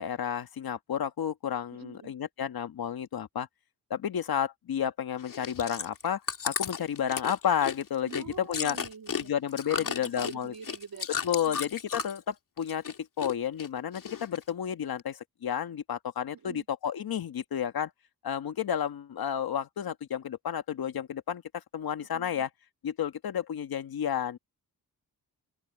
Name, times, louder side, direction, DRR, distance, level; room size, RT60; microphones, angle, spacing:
voice 1, 0.0-3.5 3.9-8.8 9.1-10.5 11.2-12.8 13.2-17.9 18.2-22.5 22.8-24.4, left 9 dB, 80° left, 1.6 m, -31 dB
voice 2, 1.7-2.1 8.0-9.3 9.7-11.6 16.3-16.6 22.1-22.5, right 7 dB, 80° right, 3.1 m, -46 dB
Chewing mastication, 5.2-12.3 12.6-13.3 13.6-14.5 15.0-15.1, left 6 dB, 60° left, 2.3 m, -34 dB
wide cardioid pair, 105°, 36 cm